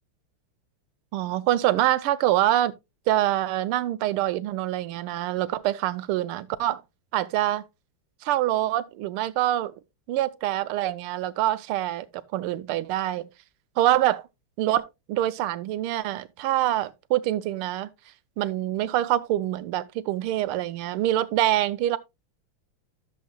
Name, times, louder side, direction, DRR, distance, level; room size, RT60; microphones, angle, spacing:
voice 1, 1.1-2.7 3.1-6.8 7.1-7.6 8.2-9.7 10.1-12.1 12.3-13.3 13.8-14.3 14.6-17.9 18.4-22.0, right 13 dB, 85° right, 1.6 m, -25 dB
13.0 x 7.1 x 2.3 m
omnidirectional pair, 2.4 m